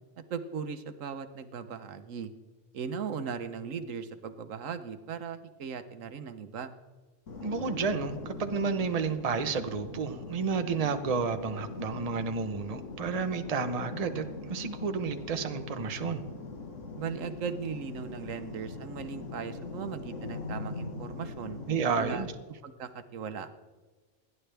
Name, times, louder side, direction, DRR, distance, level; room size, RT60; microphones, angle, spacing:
voice 1, 0.3-2.3 2.7-6.7 17.0-21.6 21.9-22.2 22.6-23.5, right 6 dB, 80° right, 10 dB, 1.2 m, -38 dB
sound 1, 7.3-22.3, left 3 dB, 70° left, 1.8 m, -41 dB
voice 2, 7.4-16.2 21.7-22.3, right 5 dB, 35° right, 8 dB, 0.9 m, -31 dB
28.5 x 10.5 x 3.4 m, 1.3 s
omnidirectional pair, 1.3 m